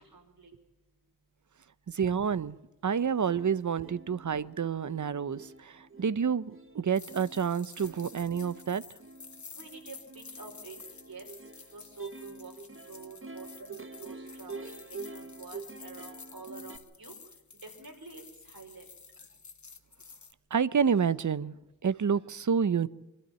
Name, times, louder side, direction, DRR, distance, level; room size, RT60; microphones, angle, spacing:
voice 1, 0.1-0.5 9.5-10.8 11.1-11.3 11.7-17.1 17.6-18.9, right 4 dB, 85° right, 1 dB, 5.2 m, -48 dB
voice 2, 1.9-2.6 2.8-8.8 20.5-21.5 21.8-22.9, right 7 dB, 60° right, 18 dB, 0.7 m, -29 dB
Plucked string instrument, 2.9-3.0 3.3-16.8, right 3 dB, 35° right, 1.3 m, -47 dB
sound 1, 6.9-20.3, left 5 dB, 55° left, 1.3 m, -51 dB
25.5 x 12.5 x 9.2 m, 1.0 s
wide cardioid pair, 90°, 35 cm